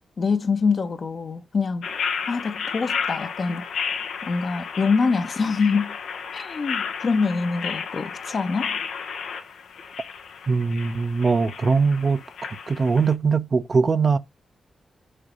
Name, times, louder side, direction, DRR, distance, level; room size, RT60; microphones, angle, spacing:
voice 1, 0.2-1.9 2.3-3.6 4.2-6.0 6.3-8.8, left 4 dB, 60° left, 1.0 m, -24 dB
sound 1, 1.8-13.1, left 6 dB, 90° left, 0.9 m, -32 dB
voice 2, 10.5-12.2 12.7-14.2, right 4 dB, 50° right, 0.6 m, -21 dB
6.5 x 2.9 x 5.2 m
cardioid pair, 60°, 0 cm